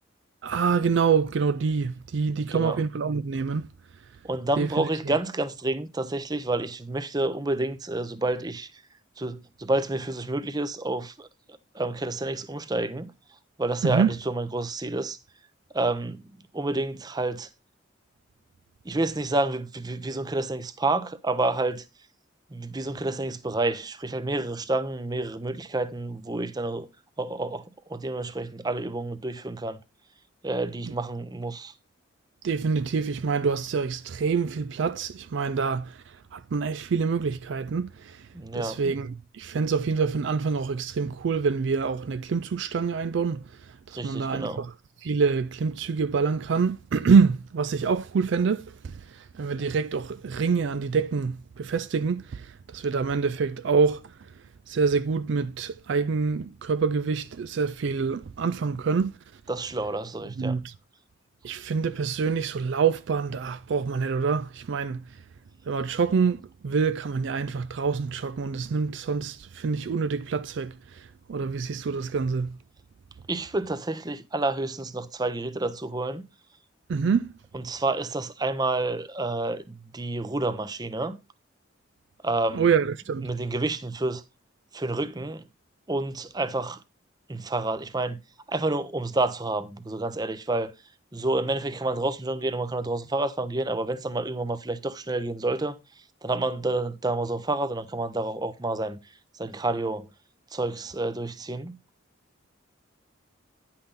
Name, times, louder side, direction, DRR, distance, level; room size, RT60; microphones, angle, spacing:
voice 1, 0.4-3.7 4.6-4.9 13.8-14.1 30.9-31.0 32.4-36.0 36.3-38.3 38.5-43.4 43.9-44.7 45.0-54.1 54.7-59.1 60.4-60.7 61.4-65.0 65.7-72.6 76.9-77.3 82.5-83.3, right 5 dB, 60° right, 0.4 m, -26 dB
voice 2, 2.4-2.8 4.2-8.7 9.2-11.3 11.7-13.1 13.6-15.2 15.7-16.2 16.5-17.5 18.8-21.8 22.5-26.9 27.2-27.6 27.9-29.8 30.4-31.7 38.3-38.8 44.0-44.6 59.5-60.6 73.3-76.2 77.6-81.2 82.2-82.7 83.2-84.2 84.7-85.4 85.9-86.8 87.3-88.2 88.5-90.7 91.1-95.8 96.2-99.0 99.4-100.1 100.5-101.8, right 2 dB, 20° right, 0.6 m, -29 dB
10.0 x 5.8 x 4.0 m
head